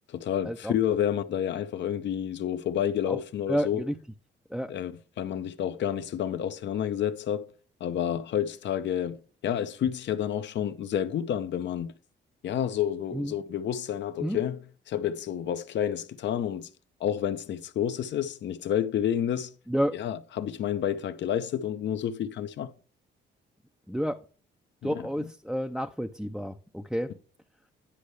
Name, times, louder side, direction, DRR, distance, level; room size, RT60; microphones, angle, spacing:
voice 1, 0.1-3.8 4.7-7.5 7.8-9.2 9.4-11.9 12.4-16.7 17.0-19.5 19.9-22.7 24.8-25.3, left 10 dB, 65° left, 0.8 m, -30 dB
voice 2, 3.5-3.9 4.5-4.7 13.1-13.3 14.2-14.4 19.7-20.0 23.9-24.2 24.8-27.1, equal, ahead, 0.5 m, -30 dB
10.0 x 5.3 x 3.3 m
cardioid pair, 90°, 20 cm